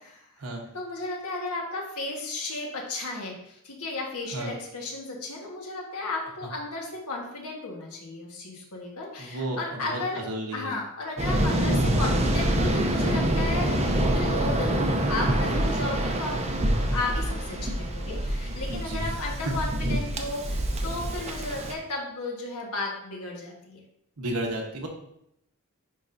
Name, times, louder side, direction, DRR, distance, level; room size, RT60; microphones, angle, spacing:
voice 1, 0.7-10.2 10.5-16.4 16.7-23.8, left 2 dB, 80° left, -1 dB, 1.4 m, -34 dB
voice 2, 9.2-10.7 13.0-13.2 18.7-19.2 24.2-24.9, right 1 dB, 75° right, 1 dB, 1.2 m, -33 dB
Waves surf, 11.2-21.7, right 1 dB, 30° right, 0.6 m, -26 dB
9.9 x 3.7 x 2.6 m, 0.77 s
head